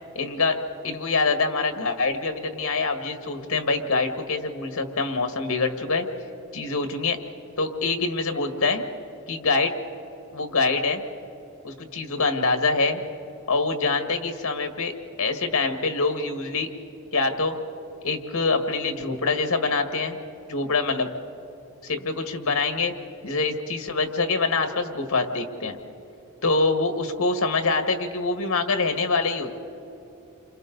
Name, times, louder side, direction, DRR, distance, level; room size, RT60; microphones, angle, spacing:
voice 1, 0.2-0.6 0.8-6.1 6.5-7.2 7.6-8.8 9.3-9.7 10.3-11.0 11.6-13.0 13.5-14.9 15.2-16.7 17.1-17.6 18.0-20.2 20.5-21.1 21.8-22.9 23.2-25.8 26.4-29.5, left 3 dB, 80° left, 6 dB, 1.8 m, -25 dB
29.5 x 26.0 x 4.0 m, 2.9 s
head